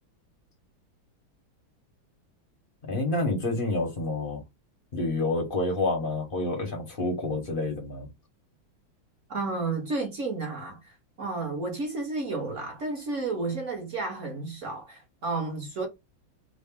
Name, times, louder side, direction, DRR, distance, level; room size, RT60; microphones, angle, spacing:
voice 1, 2.8-4.4 4.9-8.1, left 2 dB, 40° left, 0.8 m, -28 dB
voice 2, 9.3-10.8 11.2-15.9, right 3 dB, 45° right, 1.2 m, -31 dB
3.9 x 2.1 x 3.6 m
omnidirectional pair, 2.3 m